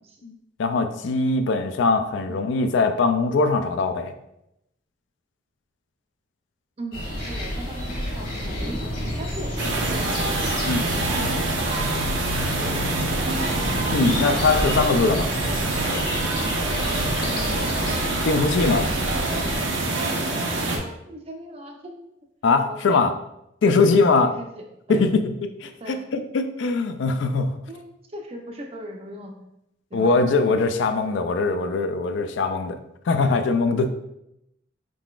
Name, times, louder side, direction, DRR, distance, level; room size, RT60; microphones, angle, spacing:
voice 1, 0.6-4.1 10.6-10.8 13.9-15.3 18.2-18.9 22.4-23.1 23.6-24.3 24.9-25.3 25.6-26.0 26.3-27.5 29.9-32.8 33.1-33.9, left 3 dB, 70° left, 8 dB, 0.4 m, -21 dB
voice 2, 6.8-10.1 10.8-11.4 12.3-13.4 15.5-15.7 17.2-17.7 20.7-22.0 22.7-23.0 23.7-23.8 24.2-25.0 25.8-26.0 27.7-27.8 28.1-29.5 29.9-30.2, right 1 dB, 30° right, 3 dB, 0.5 m, -39 dB
sound 1, 6.9-19.6, equal, 50° left, 1.3 m, -30 dB
sound 2, 9.6-20.8, right 2 dB, 75° right, 0.7 m, -25 dB
4.7 x 3.8 x 2.4 m, 0.83 s
head